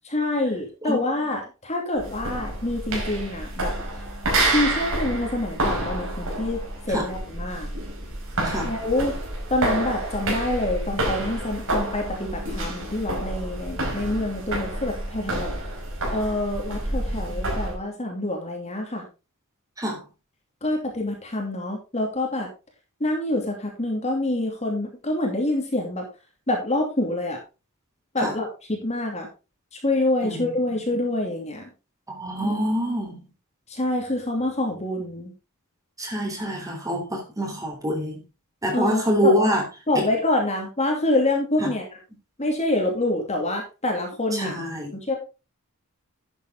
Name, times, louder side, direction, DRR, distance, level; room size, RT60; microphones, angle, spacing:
voice 1, 0.0-3.7 4.5-7.7 8.6-9.1 9.5-15.5 16.1-19.1 20.6-22.5 23.0-26.0 26.5-27.4 28.1-29.3 29.8-31.6 33.7-35.3 38.7-39.6 39.9-41.9 42.4-44.6 44.9-45.2, left 1 dB, 30° left, 2.7 m, -26 dB
sound 1, 2.0-17.8, right 1 dB, 65° right, 5.1 m, -29 dB
voice 2, 30.2-30.5 32.1-33.2 36.0-38.2 38.6-39.6 39.9-40.1 41.6-41.7 44.3-44.9, equal, 15° right, 3.7 m, -25 dB
11.5 x 8.2 x 3.8 m
head